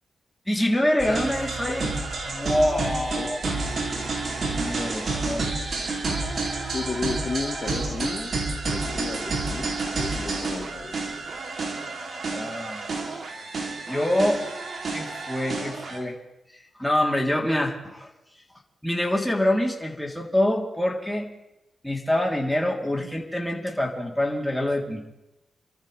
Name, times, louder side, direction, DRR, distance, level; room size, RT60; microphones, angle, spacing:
voice 1, 0.5-3.4 4.4-5.5 12.2-12.9 13.9-14.4 14.9-16.2 16.5-18.1 18.8-21.3 21.8-25.0, left 1 dB, 5° left, -1 dB, 3.7 m, -26 dB
sound 1, 1.0-16.0, right 3 dB, 65° right, 3.3 m, -30 dB
voice 2, 6.7-8.3 8.7-11.0 22.8-23.1, left 4 dB, 45° left, 2 dB, 2.4 m, -33 dB
28.5 x 14.0 x 3.5 m, 0.94 s
cardioid pair, 70°, 0 cm